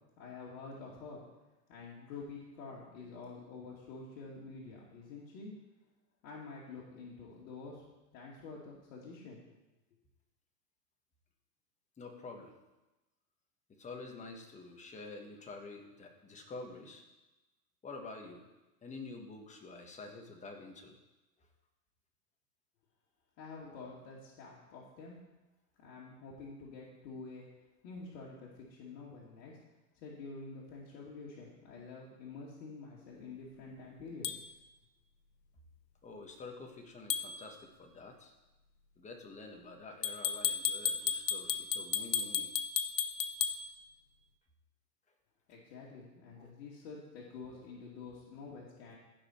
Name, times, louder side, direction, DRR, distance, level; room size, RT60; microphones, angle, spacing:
voice 1, 0.2-1.2 1.7-5.5 6.2-7.8 8.1-9.4 23.4-25.2 25.8-27.5 27.8-29.6 29.9-34.3 45.5-49.0, left 4 dB, 55° left, -6 dB, 2.5 m, -48 dB
voice 2, 12.0-12.6 13.7-17.0 17.8-18.5 18.8-21.0 36.0-38.3 39.0-42.5 46.4-46.5, left 3 dB, 15° left, 2 dB, 1.4 m, -48 dB
sound 1, 34.2-34.4 37.1-37.3 40.0-43.6, left 8 dB, 75° left, 0.9 m, -33 dB
15.0 x 5.3 x 4.4 m, 1.0 s
hypercardioid pair, 125°, 50 cm